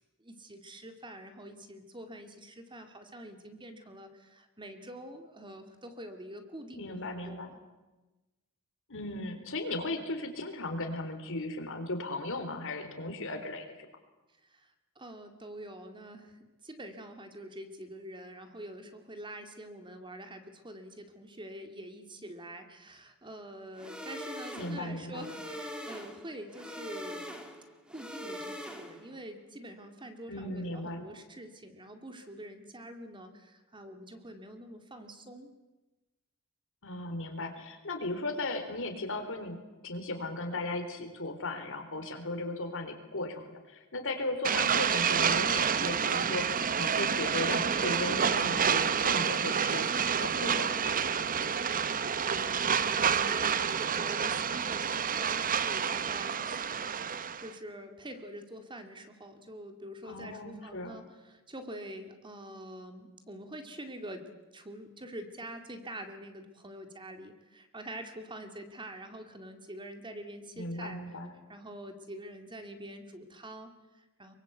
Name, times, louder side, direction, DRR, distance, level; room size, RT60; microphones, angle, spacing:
voice 1, 0.2-7.5 14.4-27.2 27.9-35.5 51.8-56.9 57.4-64.2 64.5-71.0 71.5-74.4, right 1 dB, 20° right, 6 dB, 2.3 m, -46 dB
voice 2, 6.8-7.5 8.9-13.9 24.6-25.3 30.3-31.1 36.8-46.5 46.8-49.9 50.2-50.8 60.0-61.0 70.6-71.3, left 2 dB, 65° left, 6 dB, 3.9 m, -36 dB
sound 1, 23.8-29.2, equal, 5° right, 2.6 m, -42 dB
sound 2, 44.4-57.5, right 7 dB, 40° right, 0.9 m, -29 dB
24.0 x 23.5 x 8.1 m, 1.1 s
head